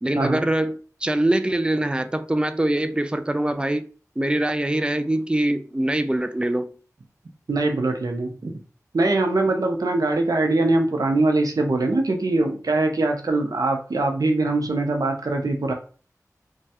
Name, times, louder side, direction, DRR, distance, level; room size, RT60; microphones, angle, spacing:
voice 1, 0.0-3.9 4.2-6.7, right 1 dB, 15° right, 0.3 m, -23 dB
voice 2, 7.5-8.6 8.9-15.7, right 2 dB, 85° right, 0.6 m, -22 dB
3.1 x 2.3 x 2.8 m
wide cardioid pair, 50°, 6 cm